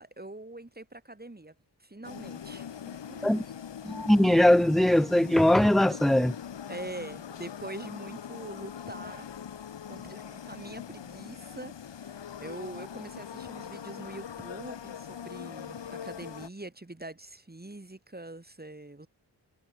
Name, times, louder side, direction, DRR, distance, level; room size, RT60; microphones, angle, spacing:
voice 1, 0.0-1.5 1.8-3.5 3.9-4.1 6.7-9.3 9.9-19.1, right 2 dB, 20° right, 3.9 m, -44 dB
sound 1, 2.0-16.5, left 8 dB, 85° left, 1.4 m, -42 dB
voice 2, 3.8-6.3, left 1 dB, ahead, 0.5 m, -21 dB
cardioid pair, 45°, 43 cm